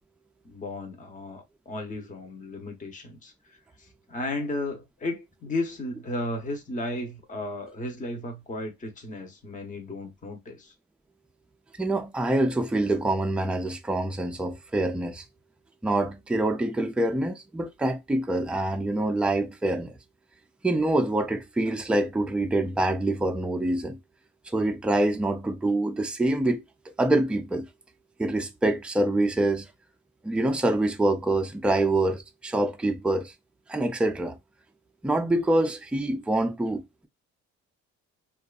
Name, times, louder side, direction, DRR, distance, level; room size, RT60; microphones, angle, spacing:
voice 1, 0.4-10.7, left 2 dB, 25° left, 0.8 m, -34 dB
voice 2, 11.8-15.2 15.8-20.0 20.6-24.0 24.5-26.6 27.0-27.7 28.2-29.7 30.2-33.3 33.7-34.4 35.0-37.1, right 2 dB, 5° right, 0.3 m, -25 dB
2.6 x 2.4 x 2.3 m
cardioid pair, 90°, 30 cm